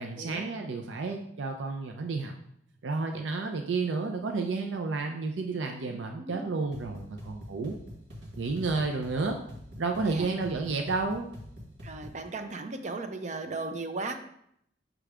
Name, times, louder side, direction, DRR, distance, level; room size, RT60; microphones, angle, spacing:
voice 1, 0.0-2.3 2.8-7.7 8.4-9.4 9.8-11.3, right 3 dB, 90° right, 3 dB, 0.5 m, -31 dB
voice 2, 5.9-6.5 10.0-10.3 11.8-14.2, right 3 dB, 40° right, 6 dB, 0.6 m, -37 dB
sound 1, 6.7-12.3, left 1 dB, 70° right, 1.4 m, -46 dB
6.1 x 3.3 x 4.9 m, 0.72 s
head